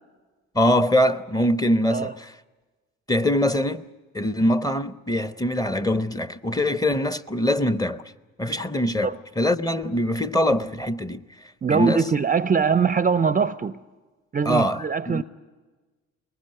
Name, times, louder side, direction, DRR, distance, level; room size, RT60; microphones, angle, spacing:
voice 1, 0.5-2.3 3.1-3.9 4.1-8.0 8.4-11.2 11.7-12.1 14.5-14.8 15.1-15.2, left 1 dB, 10° left, 0.9 m, -23 dB
voice 2, 11.6-13.8 14.3-15.2, right 6 dB, 20° right, 0.6 m, -22 dB
21.5 x 19.5 x 9.1 m
figure-of-eight pair, 45°, 37 cm